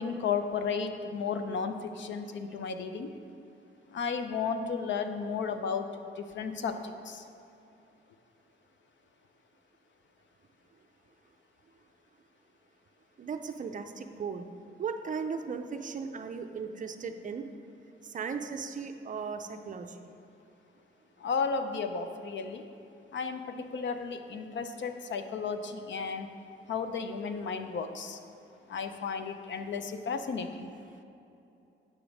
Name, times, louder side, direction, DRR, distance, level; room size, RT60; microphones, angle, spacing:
voice 1, 0.0-3.1 3.9-5.8 6.3-6.7 7.1-7.2 21.2-22.6 23.1-26.3 26.7-28.2 28.7-30.7, left 5 dB, 65° left, 8 dB, 0.6 m, -33 dB
voice 2, 13.2-14.4 14.8-17.5 18.0-20.1, right 5 dB, 40° right, 7 dB, 0.5 m, -37 dB
8.3 x 5.2 x 6.1 m, 2.8 s
wide cardioid pair, 160°, 20 cm